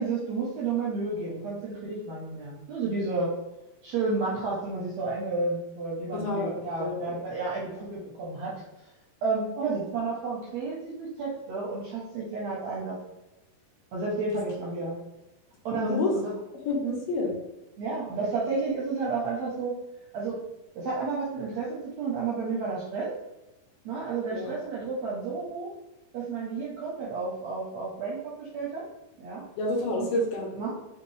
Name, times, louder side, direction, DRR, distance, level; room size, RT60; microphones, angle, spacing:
voice 1, 0.0-3.3 3.8-8.5 9.2-13.0 13.9-15.0 15.6-16.3 16.8-17.0 17.8-19.8 20.1-20.4 20.7-23.1 23.8-25.7 26.1-28.8 29.2-29.4 29.9-30.1 30.5-30.7, right 4 dB, 75° right, -5 dB, 1.7 m, -31 dB
voice 2, 6.2-7.2 15.8-16.1 16.7-17.3 24.3-24.5 29.6-30.6, left 2 dB, 75° left, -1 dB, 2.5 m, -29 dB
5.7 x 2.8 x 3.2 m, 1.0 s
omnidirectional pair, 4.2 m